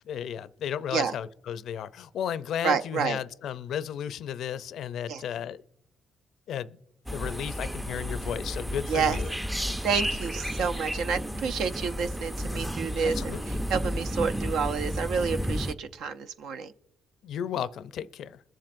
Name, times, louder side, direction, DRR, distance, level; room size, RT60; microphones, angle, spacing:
voice 1, 0.1-5.6 6.5-6.8 7.1-9.3 13.1-13.6 17.2-18.4, left 9 dB, 75° left, 0.4 m, -34 dB
voice 2, 2.6-3.2 5.1-5.2 8.9-9.2 9.8-16.7, right 6 dB, 80° right, 0.6 m, -29 dB
sound 1, 7.1-15.7, equal, 5° right, 0.4 m, -32 dB
22.0 x 7.5 x 2.5 m
cardioid pair, 90°, 0 cm